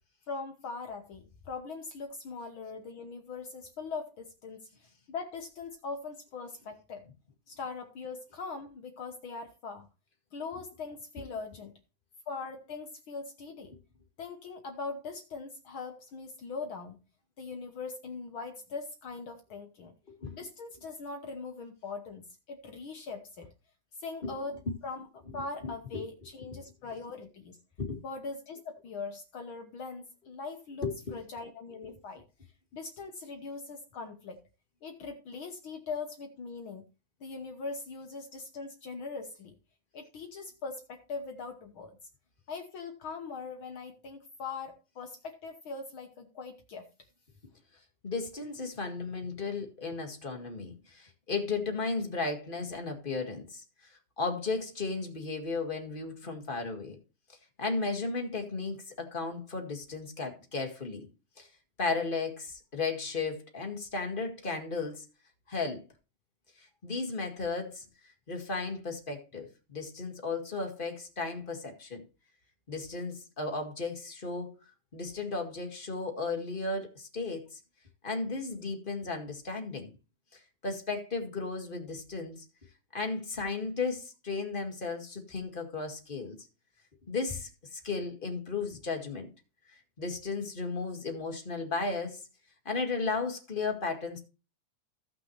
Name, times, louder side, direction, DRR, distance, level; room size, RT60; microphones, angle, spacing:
voice 1, 0.3-4.7 5.1-7.0 7.5-9.9 10.3-11.7 12.3-13.7 14.2-17.0 17.4-19.9 20.3-22.2 22.5-23.5 24.0-24.6 24.8-27.6 28.0-32.2 32.7-34.4 34.8-36.8 37.2-39.5 39.9-42.0 42.5-46.9, left 4 dB, 60° left, 1.4 m, -41 dB
voice 2, 20.1-20.4 24.2-24.3 25.6-26.0 26.5-26.6 27.8-28.0 30.8-31.2 48.0-53.6 54.2-57.0 57.6-61.1 61.4-61.5 61.8-65.0 65.5-65.8 66.6-67.8 68.3-72.0 72.7-74.5 74.9-77.6 78.0-79.9 80.3-82.4 82.9-86.4 87.1-89.3 90.0-92.2 92.6-94.2, left 4 dB, 20° left, 1.5 m, -35 dB
16.5 x 6.0 x 3.1 m
omnidirectional pair, 3.5 m